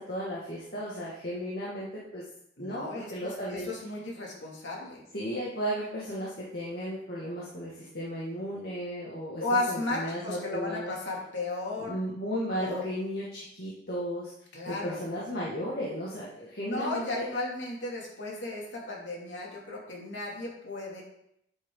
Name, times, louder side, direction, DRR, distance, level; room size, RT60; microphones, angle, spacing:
voice 1, 0.0-2.2 2.6-3.7 5.1-10.9 11.8-14.3 14.7-17.4, equal, 55° left, -6 dB, 2.1 m, -35 dB
voice 2, 2.6-5.0 9.4-12.0 12.6-12.8 14.5-15.0 16.6-21.0, left 2 dB, 85° left, -3 dB, 2.8 m, -34 dB
9.4 x 8.2 x 4.0 m, 0.74 s
head